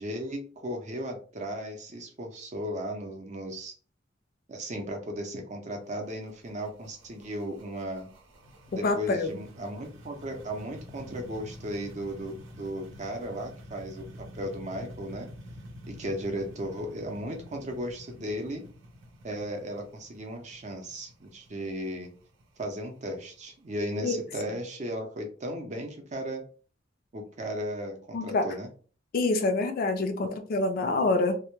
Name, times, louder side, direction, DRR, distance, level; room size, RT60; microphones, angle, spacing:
voice 1, 0.0-3.7 4.5-8.1 8.7-15.3 15.9-18.6 19.2-22.1 22.6-26.4 27.1-28.7, equal, 35° right, 0.5 m, -36 dB
sound 1, 5.7-24.5, equal, 85° right, 0.7 m, -48 dB
voice 2, 8.7-9.3 24.0-24.2 28.1-28.5 29.1-31.4, left 2 dB, 50° left, 0.3 m, -26 dB
2.1 x 2.1 x 2.9 m
head